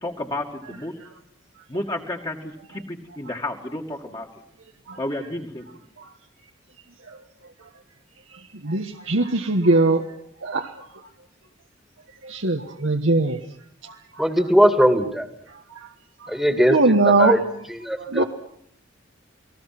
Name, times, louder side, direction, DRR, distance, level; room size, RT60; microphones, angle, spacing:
voice 1, 0.0-0.9 1.7-4.3 5.0-5.7, left 1 dB, 25° left, 0 dB, 2.3 m, -31 dB
voice 2, 8.6-10.0 10.4-10.7 12.2-13.4 13.8-13.9 16.7-17.4 18.1-18.2, right 3 dB, 80° right, 3 dB, 1.4 m, -20 dB
voice 3, 14.2-15.3 16.3-16.8 17.1-17.4 17.7-18.2, equal, ahead, 7 dB, 2.1 m, -19 dB
29.5 x 20.0 x 6.1 m, 0.70 s
head